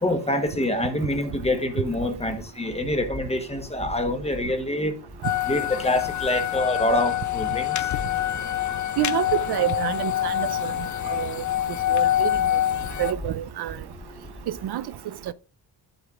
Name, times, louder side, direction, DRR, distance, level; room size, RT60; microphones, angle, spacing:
voice 1, 0.0-4.9 5.5-7.7, left 1 dB, 15° left, 1.1 m, -26 dB
sound 1, 5.2-13.1, left 13 dB, 45° left, 0.5 m, -26 dB
voice 2, 9.0-10.7 11.1-11.4 11.9-12.3 13.0-13.8 14.5-14.8 15.3-15.4, right 12 dB, 65° right, 0.5 m, -27 dB
10.5 x 8.0 x 2.4 m
wide cardioid pair, 160°, 42 cm